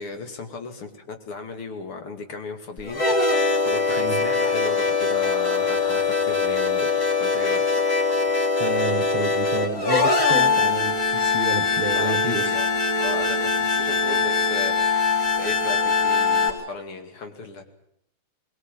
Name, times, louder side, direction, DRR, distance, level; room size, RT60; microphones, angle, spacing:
voice 1, 0.0-3.0 3.6-7.7 11.9-12.7 13.0-14.7 15.4-17.6, left 4 dB, 85° left, 6 dB, 3.4 m, -35 dB
sound 1, 2.8-16.5, left 4 dB, 45° left, 4.3 m, -22 dB
voice 2, 8.6-12.5, right 2 dB, 30° right, 9 dB, 1.6 m, -30 dB
23.0 x 20.5 x 9.1 m, 0.73 s
omnidirectional pair, 2.3 m